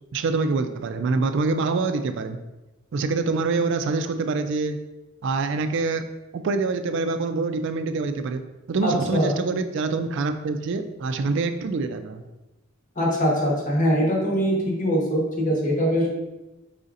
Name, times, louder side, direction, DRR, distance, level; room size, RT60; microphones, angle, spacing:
voice 1, 0.1-2.4 2.9-4.8 5.2-6.1 6.3-8.4 8.7-12.2, right 3 dB, 65° right, 8 dB, 0.3 m, -25 dB
voice 2, 8.8-9.3 13.0-16.1, equal, 40° left, -3 dB, 1.2 m, -22 dB
4.9 x 4.0 x 2.5 m, 1.0 s
head